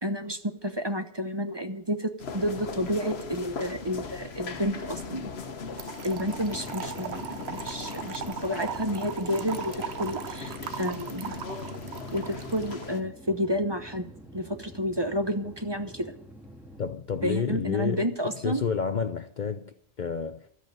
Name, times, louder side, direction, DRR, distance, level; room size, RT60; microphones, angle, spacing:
voice 1, 0.0-5.3 6.0-11.4 12.1-14.1 14.3-16.1 17.2-18.6, equal, 25° right, 0.9 m, -30 dB
sound 1, 2.2-13.0, left 4 dB, 65° left, 1.4 m, -39 dB
Trickle dribble / Fill (with liquid), 5.8-12.9, right 8 dB, 70° right, 1.0 m, -39 dB
sound 2, 6.1-16.9, equal, ahead, 1.8 m, -48 dB
voice 2, 16.8-20.5, left 6 dB, 50° left, 0.7 m, -30 dB
13.0 x 8.1 x 9.0 m
omnidirectional pair, 1.2 m